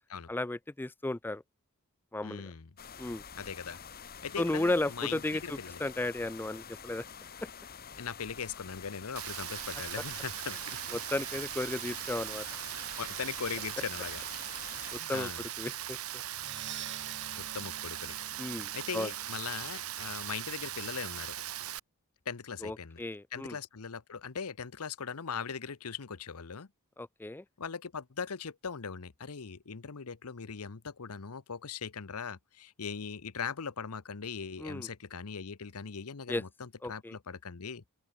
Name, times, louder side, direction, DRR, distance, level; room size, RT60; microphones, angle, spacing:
voice 1, 0.3-1.4 2.1-2.5 3.0-3.2 4.4-7.0 10.9-12.5 14.9-15.3 15.6-16.0 18.4-19.1 22.6-23.6 27.0-27.4 34.6-34.9 36.3-36.4 36.8-37.2, left 2 dB, 10° left, 0.4 m, -34 dB
voice 2, 2.2-2.7 3.4-3.8 4.2-5.8 8.0-10.8 13.0-14.2 15.0-15.4 17.4-18.1 18.7-21.3 22.3-23.0 23.3-26.7 27.6-37.8, left 6 dB, 80° left, 0.9 m, -40 dB
sound 1, 2.8-15.0, left 7 dB, 45° left, 1.9 m, -48 dB
Rain, 9.2-21.8, right 12 dB, 70° right, 1.6 m, -39 dB
Percussion, 16.3-20.1, right 8 dB, 55° right, 3.0 m, -48 dB
open air
head